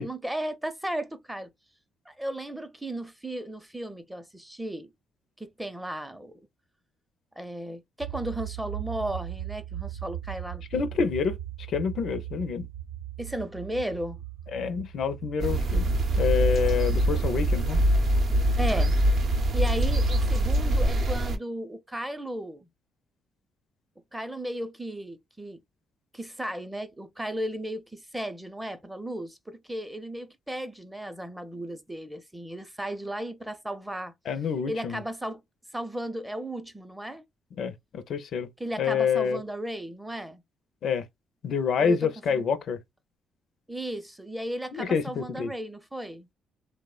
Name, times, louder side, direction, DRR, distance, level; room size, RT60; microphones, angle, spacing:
voice 1, 0.0-1.5 2.1-4.9 5.4-6.3 7.4-10.8 13.2-14.2 18.6-18.9 19.5-22.7 24.1-25.6 26.1-34.1 34.7-35.4 35.7-37.2 38.6-40.4 41.8-42.4 43.7-46.3, right 1 dB, 10° right, 0.5 m, -35 dB
sound 1, 8.0-19.3, right 12 dB, 90° right, 0.8 m, -39 dB
voice 2, 10.7-11.4 11.7-12.7 14.5-17.8 34.3-35.0 37.6-38.5 38.8-39.4 40.8-41.1 41.4-42.8 44.7-45.5, left 6 dB, 65° left, 0.4 m, -27 dB
sound 2, 15.4-21.4, right 1 dB, 60° right, 0.6 m, -23 dB
3.1 x 2.0 x 2.3 m
cardioid pair, 90°, 0 cm